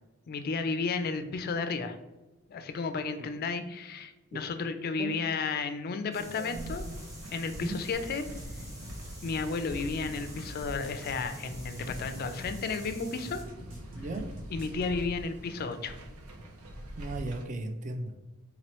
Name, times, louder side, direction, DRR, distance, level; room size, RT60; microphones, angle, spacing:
voice 1, 0.3-2.0 2.5-6.9 7.3-8.3 9.2-13.4 14.5-16.0, left 4 dB, 45° left, 9 dB, 0.4 m, -33 dB
sound 1, 6.1-13.4, equal, 15° right, 1.3 m, -48 dB
voice 2, 6.2-7.0 7.6-7.8 13.9-14.3 17.0-18.1, right 2 dB, 35° right, 6 dB, 0.4 m, -37 dB
sound 2, 6.5-17.4, right 1 dB, 90° right, 0.6 m, -45 dB
sound 3, 7.9-15.0, equal, 65° right, 1.2 m, -44 dB
3.9 x 2.9 x 3.0 m, 1.1 s
head